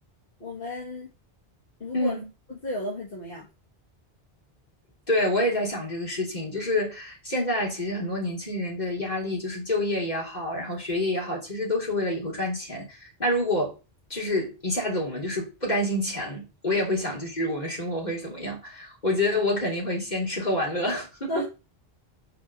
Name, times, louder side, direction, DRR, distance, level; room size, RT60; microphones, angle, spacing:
voice 1, 0.4-1.1 1.8-2.1 2.5-3.5 21.3-21.5, left 1 dB, 60° left, 2.2 m, -33 dB
voice 2, 1.9-2.3 5.1-13.8 14.1-21.5, left 1 dB, 45° left, 3.5 m, -28 dB
6.2 x 4.8 x 6.6 m
omnidirectional pair, 1.0 m